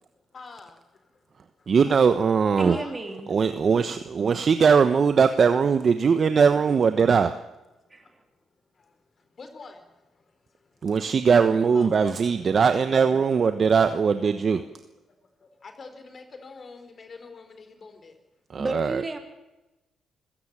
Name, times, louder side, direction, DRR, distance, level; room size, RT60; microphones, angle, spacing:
voice 1, 0.3-0.7 2.6-3.0 6.2-6.6 6.9-7.1 9.4-9.8 11.7-13.7 14.0-14.6 15.6-18.1, left 4 dB, 45° left, 7 dB, 4.3 m, -45 dB
voice 2, 1.7-2.8 3.3-7.4 10.8-14.6 18.5-19.0, right 6 dB, 45° right, 10 dB, 1.1 m, -20 dB
voice 3, 2.6-3.3 7.9-8.2 18.6-19.2, right 2 dB, 25° right, 4 dB, 3.5 m, -32 dB
26.0 x 16.5 x 7.5 m, 1.0 s
cardioid pair, 85°, 0 cm